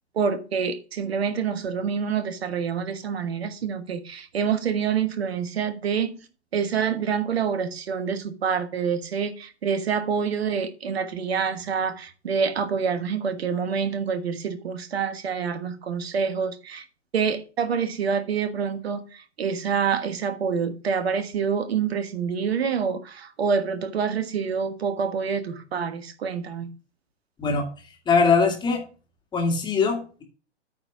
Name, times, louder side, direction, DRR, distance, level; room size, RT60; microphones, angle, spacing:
voice 1, 0.1-6.2 6.5-16.8 17.1-26.8, right 6 dB, 60° right, 1.4 m, -27 dB
voice 2, 28.1-28.8 29.3-30.2, left 5 dB, 15° left, 2.2 m, -21 dB
9.2 x 4.4 x 6.0 m
figure-of-eight pair, 120°, 35 cm